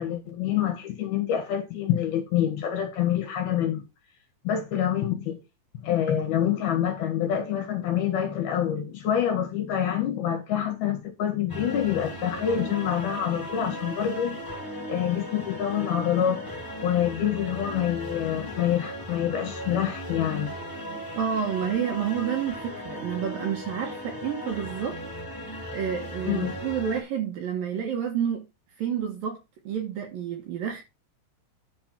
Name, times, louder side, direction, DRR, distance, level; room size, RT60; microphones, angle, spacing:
voice 1, 0.0-3.8 4.4-5.4 5.8-14.4 14.9-16.5 16.8-20.5 26.2-26.5, left 10 dB, 60° left, 3.3 m, -26 dB
sound 1, 11.5-27.0, equal, 5° left, 1.9 m, -37 dB
voice 2, 21.2-25.0 25.7-28.4 28.8-29.4 29.6-30.8, right 8 dB, 60° right, 2.6 m, -29 dB
10.5 x 4.3 x 5.9 m
omnidirectional pair, 5.5 m